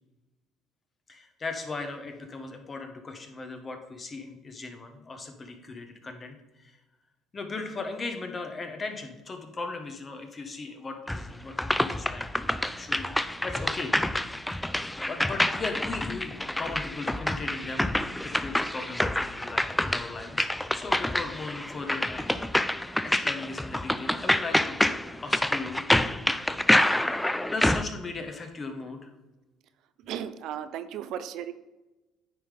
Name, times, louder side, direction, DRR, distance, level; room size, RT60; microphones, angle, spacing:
voice 1, 1.1-6.8 7.3-13.1 13.4-13.9 14.5-20.5 20.7-22.4 22.7-25.8 27.3-29.1, left 3 dB, 30° left, 5 dB, 1.2 m, -38 dB
sound 1, 11.1-27.8, left 1 dB, 5° left, 0.3 m, -27 dB
voice 2, 30.0-31.5, right 9 dB, 65° right, 12 dB, 0.5 m, -35 dB
9.6 x 3.7 x 5.0 m, 1.1 s
supercardioid pair, 95°, 0 cm